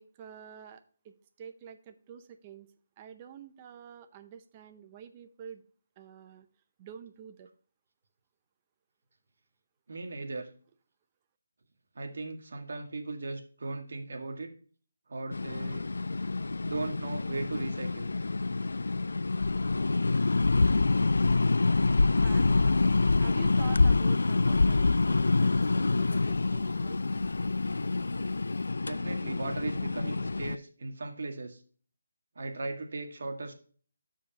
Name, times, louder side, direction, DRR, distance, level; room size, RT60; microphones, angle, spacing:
voice 1, 0.0-2.7 3.0-5.6 6.0-6.5 6.8-7.5 22.2-22.8 23.2-27.0, right 8 dB, 25° right, 8 dB, 0.7 m, -48 dB
voice 2, 9.9-10.5 12.0-14.5 15.1-15.8 16.6-18.1 28.8-31.6 32.4-33.5, right 3 dB, 65° right, 4 dB, 1.8 m, -37 dB
sound 1, 15.3-30.6, left 3 dB, 80° left, 0.3 m, -26 dB
sound 2, 22.2-28.7, left 2 dB, 50° left, 2.5 m, -55 dB
13.0 x 5.0 x 2.9 m, 0.43 s
figure-of-eight pair, 165°, 0 cm